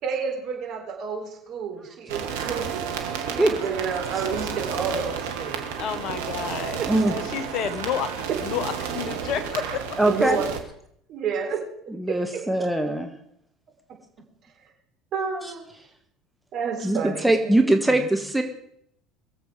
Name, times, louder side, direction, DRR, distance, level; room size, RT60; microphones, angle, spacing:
voice 1, 0.0-2.9 3.1-5.7 6.1-6.2 6.8-6.9 8.3-8.4 10.1-10.5 11.1-12.5 13.9-14.0 14.6-14.7 15.1-15.7 16.5-18.0, right 6 dB, 55° right, 2 dB, 4.0 m, -30 dB
sound 1, 2.1-10.6, right 7 dB, 75° right, 1.8 m, -32 dB
voice 2, 5.8-6.8 7.1-9.7, left 8 dB, 55° left, 12 dB, 1.3 m, -30 dB
voice 3, 10.0-10.4 12.0-13.1 16.8-18.4, right 1 dB, 5° right, 4 dB, 1.6 m, -21 dB
22.5 x 7.9 x 5.0 m, 0.71 s
hypercardioid pair, 70°, 0 cm